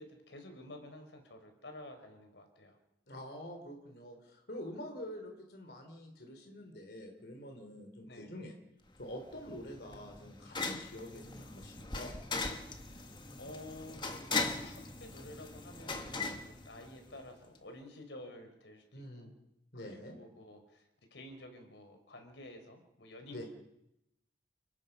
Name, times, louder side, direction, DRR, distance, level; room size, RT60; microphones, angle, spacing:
voice 1, 0.0-2.8 8.0-8.3 12.8-13.1 13.4-19.3 19.7-23.4, left 1 dB, 90° left, 6 dB, 4.5 m, -51 dB
voice 2, 3.1-8.6 9.0-12.2 18.9-19.3 19.7-20.2 23.3-23.4, left 1 dB, 60° left, 3 dB, 3.6 m, -46 dB
sound 1, 9.0-17.3, left 3 dB, 25° left, 1.6 m, -40 dB
29.5 x 19.5 x 5.6 m, 0.86 s
head